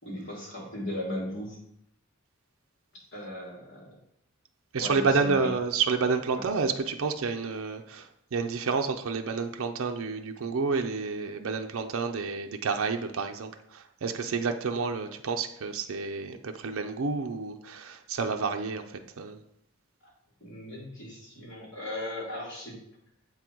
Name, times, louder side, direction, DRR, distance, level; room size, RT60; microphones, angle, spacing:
voice 1, 0.0-1.6 3.1-3.9 4.8-5.5 6.3-6.5 20.0-20.1 20.4-22.8, left 1 dB, 60° left, -3 dB, 2.6 m, -37 dB
voice 2, 4.7-8.1 8.3-18.8 19.2-19.4, right 4 dB, 75° right, 5 dB, 0.5 m, -29 dB
7.5 x 3.8 x 4.5 m, 0.74 s
head